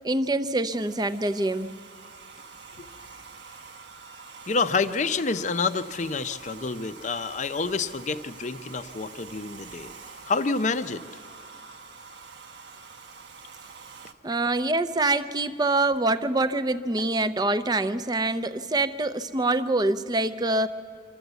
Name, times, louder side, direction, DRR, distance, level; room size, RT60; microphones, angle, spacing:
voice 1, 0.0-1.7 14.2-20.7, right 2 dB, 20° right, 11 dB, 0.5 m, -25 dB
Domestic sounds home sounds, 0.7-14.1, right 5 dB, 60° right, 0.9 m, -46 dB
voice 2, 4.5-9.9 10.3-11.0, left 4 dB, 40° left, 11 dB, 0.6 m, -28 dB
25.5 x 13.0 x 8.1 m, 2.3 s
head